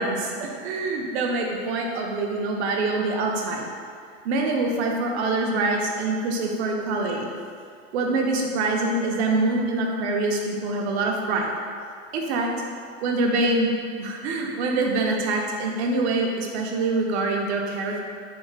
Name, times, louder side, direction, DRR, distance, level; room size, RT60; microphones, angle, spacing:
voice 1, 0.0-3.6 4.2-7.3 7.9-11.5 12.1-12.5 13.0-13.7 14.0-18.0, right 2 dB, 65° right, 0 dB, 0.6 m, -25 dB
3.4 x 2.4 x 3.2 m, 2.2 s
supercardioid pair, 145°, 35 cm